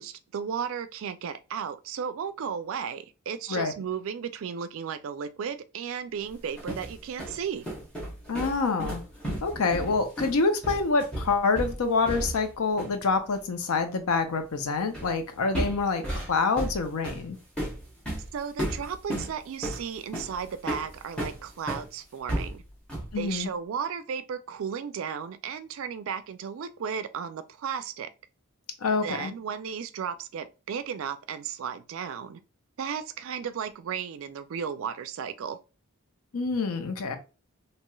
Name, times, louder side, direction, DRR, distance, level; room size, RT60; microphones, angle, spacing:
voice 1, 0.0-7.7 18.3-22.6 23.2-28.1 29.0-32.4 32.8-35.6, right 7 dB, 60° right, 0.3 m, -34 dB
sound 1, 6.3-12.5 12.8-13.0 14.9-15.2 15.5-21.9 22.3-23.2, right 1 dB, 5° left, 0.8 m, -34 dB
voice 2, 8.3-9.0 9.4-16.0 16.3-17.4 23.1-23.5 28.8-29.3 36.3-37.2, left 4 dB, 80° left, 0.6 m, -26 dB
3.0 x 2.9 x 2.2 m
head